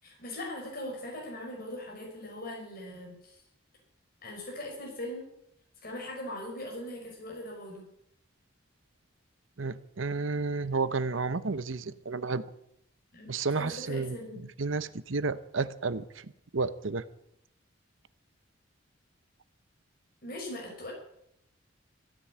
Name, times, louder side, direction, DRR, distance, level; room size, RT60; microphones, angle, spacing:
voice 1, 0.0-3.4 4.2-5.3 5.8-7.9 13.1-13.3 13.6-14.5 20.2-20.9, left 1 dB, 45° left, -1 dB, 5.6 m, -40 dB
voice 2, 9.6-12.4 13.3-14.2 14.6-17.0, right 4 dB, 80° right, 14 dB, 0.9 m, -31 dB
16.0 x 10.5 x 8.7 m, 0.75 s
head